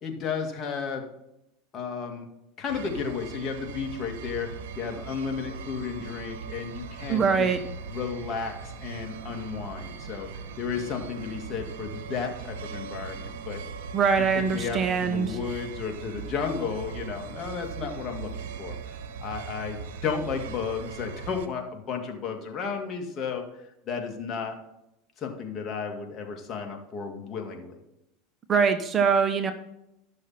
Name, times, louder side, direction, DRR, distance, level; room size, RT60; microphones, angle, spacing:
voice 1, 0.0-1.0 1.7-2.3 2.6-4.5 4.8-7.5 7.9-10.3 10.6-13.6 14.3-23.4 23.9-24.6 25.2-27.8, left 6 dB, 40° left, 2 dB, 2.2 m, -33 dB
sound 1, 2.7-21.5, right 5 dB, 80° right, 1.3 m, -39 dB
voice 2, 7.1-7.6 13.9-15.4 28.5-29.5, right 6 dB, 30° right, 8 dB, 1.1 m, -23 dB
13.0 x 6.5 x 4.4 m, 0.86 s
supercardioid pair, 105°, 0 cm